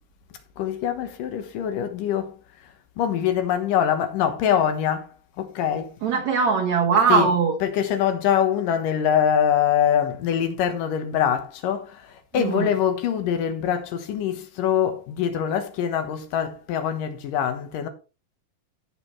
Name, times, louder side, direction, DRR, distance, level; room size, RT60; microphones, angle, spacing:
voice 1, 0.6-2.3 3.0-5.1 5.4-5.9 7.1-7.3 7.6-12.1 12.3-17.9, left 9 dB, 70° left, 2.7 m, -24 dB
voice 2, 6.0-7.6 12.3-12.7, right 5 dB, 60° right, 2.2 m, -20 dB
16.0 x 5.9 x 3.1 m
omnidirectional pair, 4.2 m